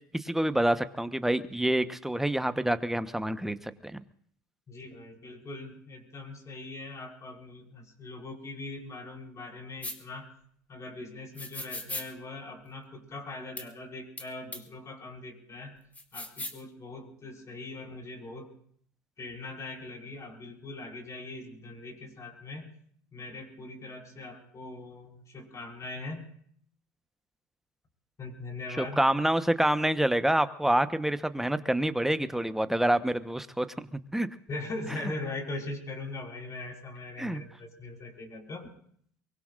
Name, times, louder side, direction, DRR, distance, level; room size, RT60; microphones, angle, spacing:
voice 1, 0.1-4.0 28.8-34.3 37.2-37.4, right 1 dB, 5° right, 11 dB, 1.0 m, -27 dB
voice 2, 4.7-10.3 10.7-15.8 16.1-18.5 19.2-22.7 23.1-26.3 28.2-29.0 34.5-38.7, left 2 dB, 35° left, 1 dB, 5.2 m, -41 dB
sound 1, 9.8-10.0 11.4-12.1 13.6-13.7 14.2-14.3 14.5-14.6 15.9-16.6, left 2 dB, 15° left, 2.6 m, -37 dB
23.5 x 23.0 x 2.5 m, 0.62 s
hypercardioid pair, 70°, 9 cm